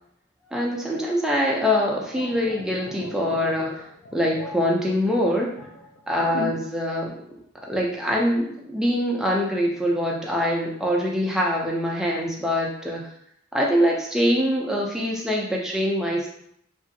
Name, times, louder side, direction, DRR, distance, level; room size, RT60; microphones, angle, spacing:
voice 1, 0.5-3.8 4.1-5.5 6.1-7.1 7.6-13.1 13.5-16.3, equal, ahead, -2 dB, 0.4 m, -24 dB
sound 1, 2.0-6.8 7.0-7.3, left 3 dB, 60° left, 0.4 m, -38 dB
2.9 x 2.6 x 2.7 m, 0.72 s
head